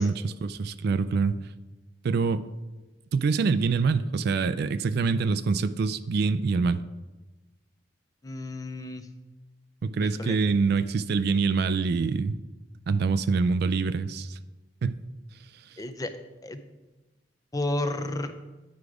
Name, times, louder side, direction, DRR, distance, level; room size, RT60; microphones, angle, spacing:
voice 1, 0.0-1.4 2.0-2.4 3.1-6.8 9.8-12.4 12.9-14.4 14.8-15.0, right 4 dB, 60° right, 14 dB, 0.3 m, -25 dB
voice 2, 8.2-9.1 10.0-10.4 15.8-16.1 16.4-16.6 17.5-18.3, left 1 dB, 20° left, 8 dB, 0.5 m, -32 dB
9.7 x 4.8 x 4.9 m, 1.1 s
head